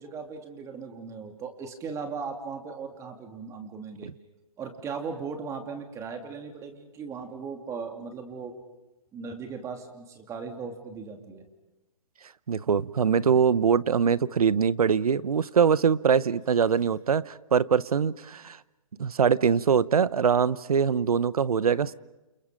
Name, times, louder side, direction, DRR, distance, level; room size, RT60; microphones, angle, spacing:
voice 1, 0.0-4.1 4.6-8.6 9.1-11.4, right 5 dB, 15° right, 4 dB, 3.0 m, -38 dB
voice 2, 12.5-18.6 19.0-21.9, right 6 dB, 80° right, 18 dB, 0.9 m, -23 dB
29.5 x 29.0 x 5.2 m, 1.1 s
hypercardioid pair, 140°, 18 cm